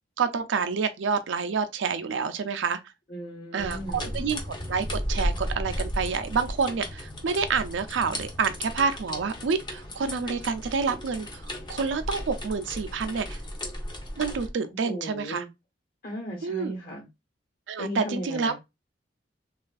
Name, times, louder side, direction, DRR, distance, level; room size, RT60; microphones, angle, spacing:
voice 1, 0.2-2.8 3.5-4.4 4.7-11.4 11.7-13.4 14.2-15.4 16.4-16.7 17.7-18.6, right 5 dB, 75° right, 0.4 m, -28 dB
voice 2, 3.1-4.2 14.8-15.5 16.0-17.1 17.8-18.6, equal, 45° left, 1.1 m, -36 dB
sound 1, 3.6-14.5, equal, 25° left, 0.7 m, -35 dB
3.3 x 2.4 x 2.2 m
head